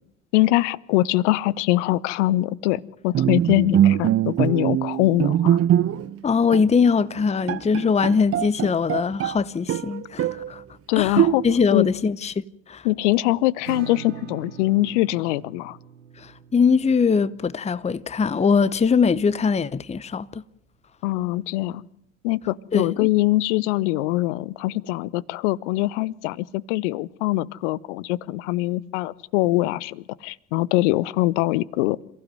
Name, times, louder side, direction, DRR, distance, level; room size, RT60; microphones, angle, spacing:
voice 1, 0.3-5.6 10.9-11.4 11.7-11.9 12.8-15.8 21.0-21.8 22.2-32.0, left 18 dB, 65° left, 0.9 m, -23 dB
Bowed string instrument, 3.1-6.2 6.5-6.7 7.2-7.3 7.5-9.4 9.7-10.5 11.2-11.8, right 11 dB, 40° right, 1.0 m, -22 dB
voice 2, 6.2-10.6 11.0-11.2 11.4-12.9 16.2-20.4 22.7-23.1, left 5 dB, 15° left, 0.8 m, -22 dB
Acoustic guitar / Strum, 13.6-19.1, right 9 dB, 85° right, 1.0 m, -43 dB
28.0 x 15.5 x 7.8 m
figure-of-eight pair, 60°, 37 cm